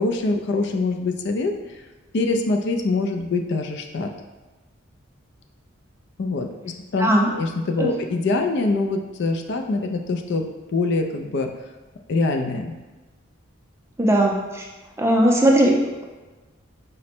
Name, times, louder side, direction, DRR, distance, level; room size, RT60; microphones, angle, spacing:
voice 1, 0.0-1.6 2.1-4.1 6.2-10.4 10.7-11.5 12.1-12.8, left 3 dB, 55° left, 4 dB, 0.4 m, -24 dB
voice 2, 7.0-7.3 7.8-7.9 14.0-14.6 15.0-16.1, right 1 dB, 15° right, 0 dB, 0.4 m, -18 dB
5.0 x 2.1 x 4.3 m, 1.2 s
head